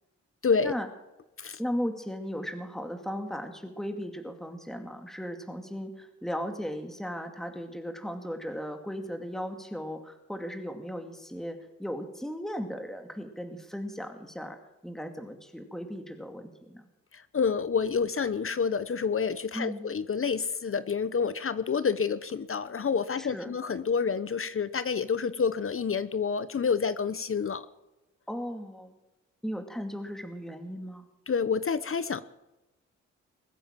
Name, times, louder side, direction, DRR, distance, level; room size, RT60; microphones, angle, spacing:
voice 1, 0.4-0.7 1.4-1.6 17.1-27.7 31.3-32.2, left 6 dB, 45° left, 15 dB, 1.0 m, -28 dB
voice 2, 1.6-14.6 14.8-16.9 19.5-19.9 23.2-23.5 28.3-29.0 29.4-31.1, equal, ahead, 5 dB, 2.4 m, -36 dB
21.0 x 8.6 x 7.5 m, 0.98 s
supercardioid pair, 55°, 31 cm